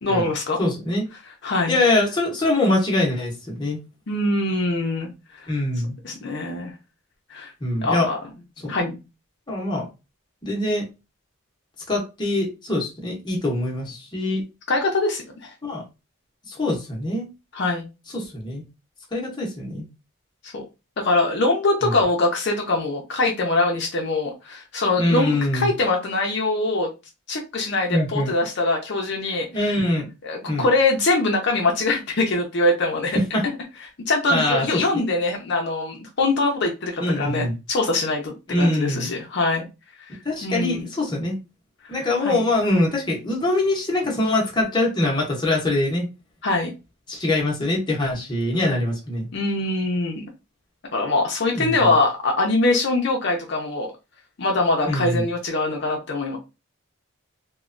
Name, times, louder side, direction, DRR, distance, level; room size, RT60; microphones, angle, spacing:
voice 1, 0.0-0.6 1.4-1.8 4.1-5.1 5.4-5.5 6.0-6.7 7.3-7.5 7.8-8.2 8.7-9.0 14.7-15.5 17.5-17.9 20.4-20.6 21.0-26.9 27.3-29.7 30.2-33.2 34.1-39.7 40.4-40.9 42.2-42.4 46.4-46.7 49.3-50.2 50.9-53.9 54.4-56.4, left 2 dB, 55° left, 1 dB, 0.5 m, -23 dB
voice 2, 0.6-1.1 1.7-3.8 5.5-5.9 7.6-8.1 8.6-8.7 9.5-9.9 10.4-10.9 11.9-14.4 15.6-15.8 16.5-17.3 18.1-18.6 19.1-19.8 21.8-21.9 25.0-25.7 27.9-28.3 29.5-30.1 30.5-30.7 33.1-33.4 34.3-35.0 37.0-37.6 38.5-39.1 40.2-41.3 41.9-46.1 47.1-49.3 51.5-51.9 54.9-55.2, left 2 dB, 20° left, -2 dB, 0.8 m, -23 dB
3.0 x 2.1 x 2.5 m, 0.27 s
head